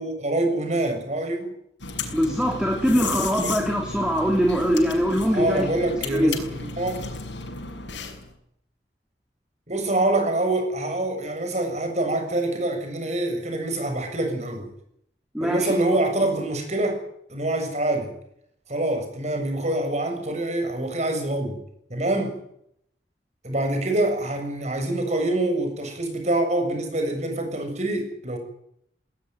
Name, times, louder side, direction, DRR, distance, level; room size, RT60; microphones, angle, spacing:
voice 1, 0.0-1.5 3.4-3.6 5.3-7.0 9.7-14.7 15.4-17.0 17.3-18.1 18.7-21.6 21.9-22.4 23.4-28.4, right 1 dB, 40° right, 5 dB, 7.3 m, -25 dB
sound 1, 1.8-8.3, left 4 dB, 90° left, 6.2 m, -34 dB
voice 2, 2.1-6.4 15.3-15.7, equal, 5° right, 3 dB, 2.9 m, -23 dB
20.0 x 19.5 x 9.2 m, 0.72 s
head